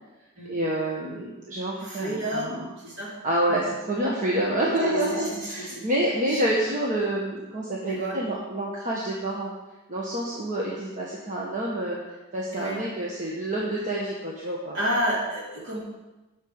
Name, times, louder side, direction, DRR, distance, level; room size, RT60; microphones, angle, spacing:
voice 1, 0.5-2.7 3.2-9.5 9.9-12.0 12.3-14.8, right 1 dB, 35° right, -4 dB, 1.5 m, -28 dB
voice 2, 1.8-3.1 4.8-5.8 6.3-6.4 7.8-8.2 12.5-12.8 14.7-15.8, equal, 55° right, -5 dB, 3.8 m, -30 dB
8.2 x 6.7 x 8.2 m, 1.1 s
head